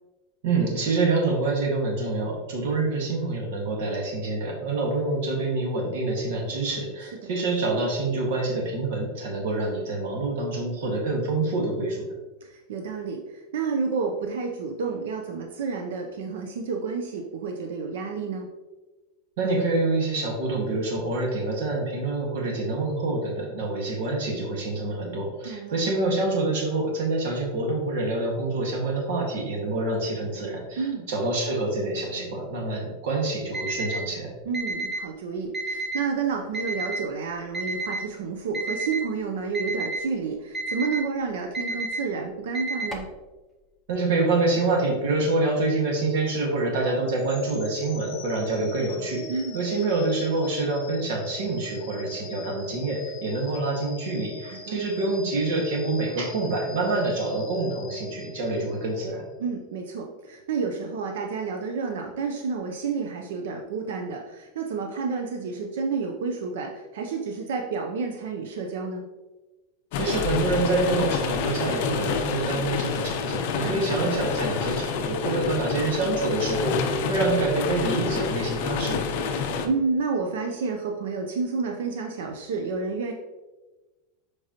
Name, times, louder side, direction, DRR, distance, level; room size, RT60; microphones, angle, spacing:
voice 1, 0.4-12.0 19.4-34.3 43.9-59.2 69.9-79.1, right 2 dB, 65° right, -1 dB, 1.8 m, -26 dB
voice 2, 12.4-18.5 25.4-25.8 30.8-31.1 34.5-43.1 49.3-49.6 54.5-54.8 59.4-69.0 73.6-74.2 79.3-83.1, right 5 dB, 85° right, 2 dB, 0.7 m, -30 dB
Alarm, 33.5-34.0 34.5-35.0 35.5-36.0 36.5-37.0 37.5-38.0 38.5-39.0 39.5-40.0 40.5-41.0 41.5-42.0 42.5-43.1, right 2 dB, 5° right, 0.7 m, -30 dB
sound 1, 47.1-59.2, left 3 dB, 25° left, 1.8 m, -43 dB
sound 2, 69.9-79.7, left 5 dB, 50° left, 0.6 m, -28 dB
7.5 x 4.6 x 3.0 m, 1.2 s
supercardioid pair, 180°, 0 cm